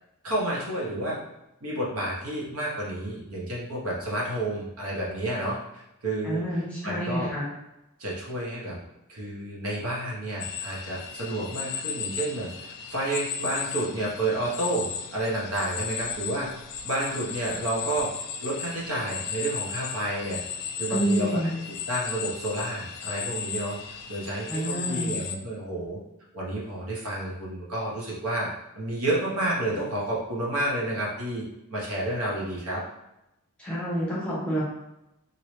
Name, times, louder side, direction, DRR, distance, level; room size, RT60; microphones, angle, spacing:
voice 1, 0.2-1.2 1.6-6.4 6.8-7.3 8.0-8.8 9.1-12.5 12.9-16.5 16.8-18.1 18.4-20.4 20.8-21.4 21.9-23.8 24.1-26.0 26.3-28.5 28.7-31.4 31.7-32.8, right 1 dB, 65° right, -5 dB, 1.0 m, -30 dB
voice 2, 6.2-7.5 20.9-21.6 24.5-25.2 33.6-34.6, right 1 dB, 5° left, -7 dB, 0.9 m, -28 dB
sound 1, 10.4-25.4, left 7 dB, 90° left, 0.3 m, -35 dB
3.1 x 2.7 x 3.1 m, 0.89 s
head